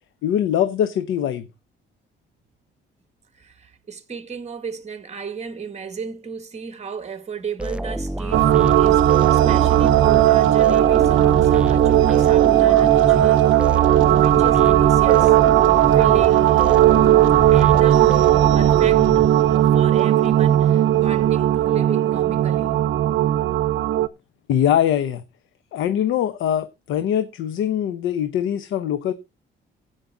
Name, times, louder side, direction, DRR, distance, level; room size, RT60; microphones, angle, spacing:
voice 1, 0.2-1.5 24.5-25.2 25.7-29.1, left 10 dB, 85° left, 0.9 m, -22 dB
voice 2, 3.3-13.5 13.9-15.3 15.9-16.7 17.5-22.8, right 6 dB, 35° right, 2.2 m, -33 dB
sound 1, 7.6-19.8, right 1 dB, 5° right, 0.4 m, -29 dB
sound 2, 8.3-24.1, right 12 dB, 75° right, 0.8 m, -16 dB
16.5 x 5.8 x 3.8 m
cardioid pair, 90°, 20 cm